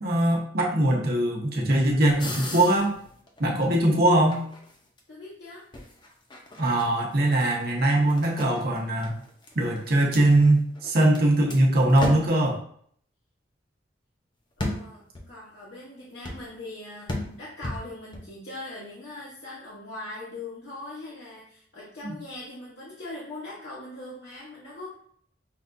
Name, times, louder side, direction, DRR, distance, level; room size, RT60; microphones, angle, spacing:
voice 1, 0.0-3.0 3.4-4.4 6.6-9.2 9.5-12.6 22.0-22.2, right 1 dB, 55° right, -1 dB, 0.9 m, -21 dB
sound 1, 2.2-3.9 4.3-5.0 5.7-11.2 11.5-11.6 11.9-12.5 14.6-15.2 16.2-16.6 17.1-18.2, left 1 dB, 25° left, 0.6 m, -35 dB
voice 2, 5.1-5.7 14.6-24.9, left 2 dB, 65° left, -7 dB, 0.9 m, -41 dB
5.6 x 2.4 x 2.5 m, 0.62 s
head